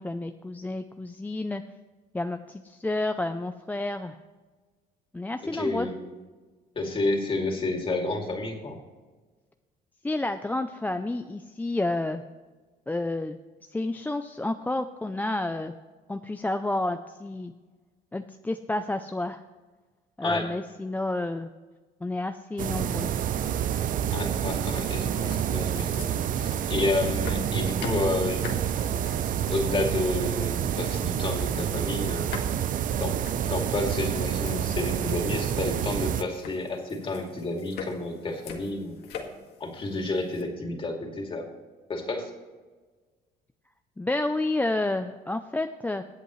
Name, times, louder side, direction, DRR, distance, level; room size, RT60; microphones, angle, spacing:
voice 1, 0.0-1.6 2.1-4.2 5.1-5.9 10.0-12.2 12.9-13.4 13.7-15.7 16.1-17.5 18.1-19.4 20.2-21.5 22.0-23.1 44.0-46.0, left 2 dB, 10° left, 7 dB, 0.5 m, -30 dB
voice 2, 5.5-5.9 6.8-8.8 20.2-20.5 24.1-28.5 29.5-32.3 33.0-33.2 33.5-39.0 39.6-41.5 41.9-42.3, left 2 dB, 30° left, 2 dB, 2.6 m, -30 dB
sound 1, 22.6-36.2, right 9 dB, 55° right, 0.6 m, -28 dB
Wood Floor foot steps, 24.6-40.4, left 6 dB, 75° left, 1.9 m, -45 dB
22.5 x 8.3 x 3.2 m, 1.4 s
cardioid pair, 110°, 17 cm